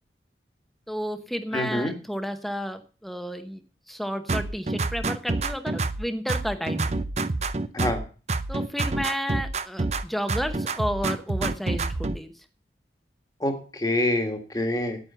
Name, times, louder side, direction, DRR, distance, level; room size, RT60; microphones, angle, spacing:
voice 1, 0.9-3.6 3.9-7.0 8.5-12.4, equal, ahead, 8 dB, 0.9 m, -32 dB
voice 2, 1.5-1.9 7.7-8.0 13.4-15.0, left 1 dB, 20° left, 5 dB, 1.7 m, -26 dB
sound 1, 4.3-6.0 6.3-8.0 8.3-10.0 10.3-12.2, right 3 dB, 40° right, 0.6 m, -27 dB
9.4 x 8.4 x 6.8 m, 0.38 s
head